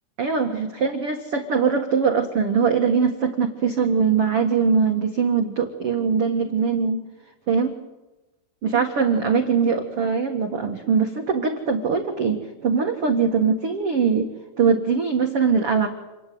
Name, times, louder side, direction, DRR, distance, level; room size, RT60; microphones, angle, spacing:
voice 1, 0.2-7.0 7.5-7.8 8.6-14.3 14.6-15.9, right 5 dB, 65° right, 4 dB, 1.4 m, -22 dB
28.5 x 20.0 x 9.4 m, 1.1 s
omnidirectional pair, 5.4 m